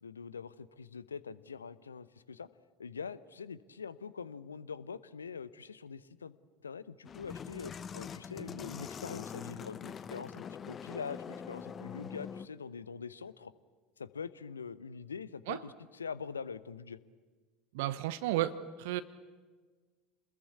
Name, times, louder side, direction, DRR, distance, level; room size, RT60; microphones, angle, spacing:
voice 1, 0.0-2.5 2.8-6.4 6.6-13.5 14.0-17.0, left 6 dB, 80° left, 17 dB, 0.8 m, -44 dB
sound 1, 7.0-12.5, left 7 dB, 30° left, 0.9 m, -44 dB
voice 2, 17.7-19.0, right 14 dB, 60° right, 13 dB, 1.0 m, -33 dB
28.0 x 21.0 x 8.4 m, 1.4 s
figure-of-eight pair, 70°, 0 cm